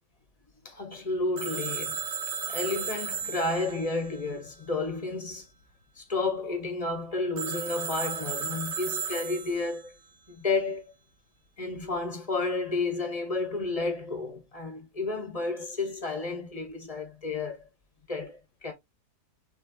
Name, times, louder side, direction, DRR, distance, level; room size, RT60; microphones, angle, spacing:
voice 1, 0.6-2.0 2.5-5.5 6.0-9.9 10.3-10.9 11.6-17.7 18.1-18.7, left 3 dB, 25° left, 1.0 m, -31 dB
Telephone, 1.4-5.0 7.4-9.9, right 7 dB, 70° right, 1.5 m, -35 dB
6.5 x 3.0 x 2.7 m
omnidirectional pair, 1.8 m